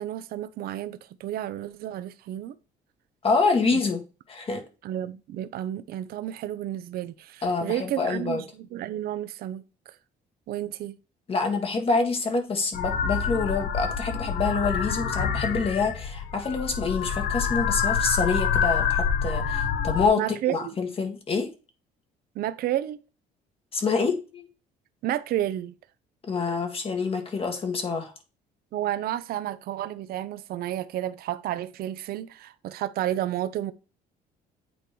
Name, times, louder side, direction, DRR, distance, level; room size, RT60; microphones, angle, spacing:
voice 1, 0.0-2.6 3.7-3.8 4.8-9.6 10.5-11.0 20.2-20.7 22.4-23.0 25.0-25.7 28.7-33.7, right 12 dB, 65° right, 0.6 m, -31 dB
voice 2, 3.2-4.0 4.3-4.6 7.4-8.4 11.3-20.2 20.5-21.5 23.7-24.5 26.2-28.1, left 4 dB, 35° left, 1.8 m, -26 dB
sound 1, 12.7-20.1, left 7 dB, 65° left, 1.0 m, -27 dB
8.5 x 2.9 x 5.3 m
cardioid pair, 110°, 17 cm